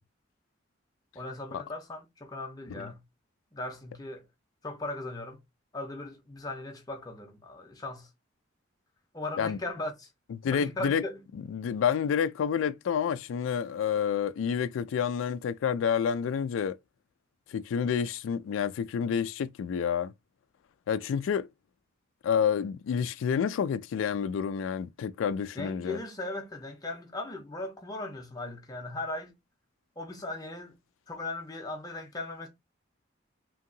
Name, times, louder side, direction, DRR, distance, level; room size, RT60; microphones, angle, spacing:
voice 1, 1.1-3.0 3.5-4.2 4.6-5.4 5.7-8.1 9.1-10.1 10.5-11.2 25.6-29.3 30.0-30.7 31.1-32.5, left 2 dB, 20° left, 0.6 m, -38 dB
voice 2, 10.4-11.0 11.3-16.8 17.5-20.1 20.9-21.5 22.2-26.0, left 7 dB, 90° left, 0.3 m, -29 dB
2.8 x 2.7 x 2.6 m
head